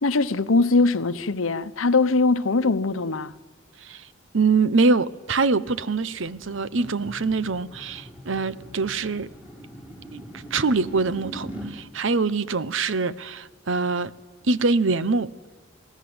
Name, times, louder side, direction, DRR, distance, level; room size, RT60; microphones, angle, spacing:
voice 1, 0.0-3.4, left 3 dB, 90° left, 0.9 m, -21 dB
voice 2, 4.3-9.3 10.1-10.2 10.5-14.1 14.4-15.3, right 4 dB, 70° right, 0.9 m, -24 dB
sound 1, 5.7-11.7, right 1 dB, 10° right, 7.6 m, -41 dB
28.0 x 19.0 x 8.0 m
head